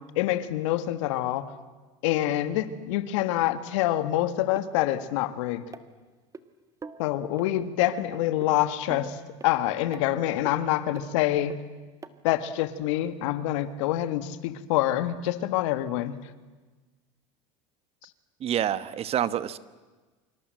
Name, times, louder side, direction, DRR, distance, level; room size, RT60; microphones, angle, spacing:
voice 1, 0.0-1.5 2.0-5.6 7.0-11.6 12.2-16.2, left 13 dB, 75° left, 12 dB, 1.8 m, -26 dB
sound 1, 4.6-4.7 5.7-6.4 6.8-7.0 7.4-7.5 7.9-8.0 8.4-8.5 8.9-9.5 9.9-10.1 10.5-10.6 11.0-11.1 11.5-11.6 12.0-12.1 12.8-12.9, right 5 dB, 20° right, 1.5 m, -41 dB
voice 2, 18.4-19.6, right 10 dB, 40° right, 16 dB, 1.2 m, -27 dB
28.5 x 25.5 x 7.8 m, 1.3 s
supercardioid pair, 110°, 16 cm